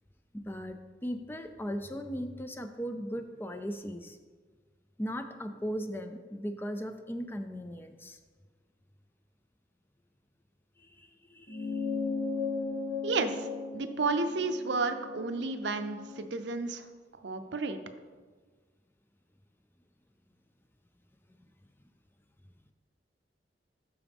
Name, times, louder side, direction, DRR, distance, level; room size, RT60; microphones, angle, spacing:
voice 1, 0.3-4.2 5.0-8.2 10.8-11.9, equal, 10° left, 7 dB, 0.4 m, -38 dB
sound 1, 11.5-16.3, left 4 dB, 55° left, 1.9 m, -36 dB
voice 2, 13.0-13.5 13.7-16.8 17.2-17.8, right 3 dB, 75° right, 8 dB, 0.6 m, -32 dB
12.5 x 4.8 x 3.5 m, 1.4 s
head